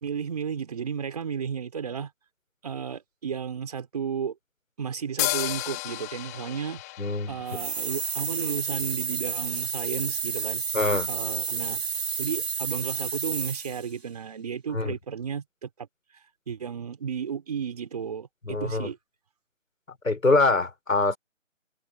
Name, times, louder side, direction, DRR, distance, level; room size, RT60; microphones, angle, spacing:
voice 1, 0.0-2.1 2.6-4.4 4.8-6.8 7.3-10.6 11.1-15.7 16.5-19.0, right 7 dB, 30° right, 4.1 m, -33 dB
sound 1, 5.2-8.7, left 19 dB, 15° left, 3.9 m, -33 dB
voice 2, 7.0-7.6 10.7-11.1 14.7-14.9 18.5-18.9 20.0-21.2, left 3 dB, 90° left, 4.7 m, -24 dB
sound 2, 7.5-13.9, right 5 dB, 50° right, 5.7 m, -30 dB
figure-of-eight pair, 170°, 39 cm